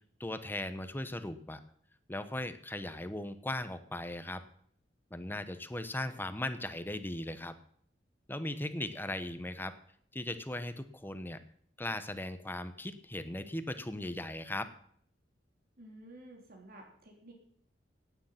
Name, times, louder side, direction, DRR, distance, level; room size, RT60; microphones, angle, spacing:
voice 1, 0.2-1.6 2.1-4.4 5.1-7.5 8.3-9.8 10.1-11.4 11.8-14.7, left 1 dB, 10° left, 11 dB, 1.0 m, -38 dB
voice 2, 15.8-17.3, right 1 dB, 55° right, 1 dB, 3.6 m, -52 dB
17.0 x 9.3 x 5.8 m, 0.63 s
head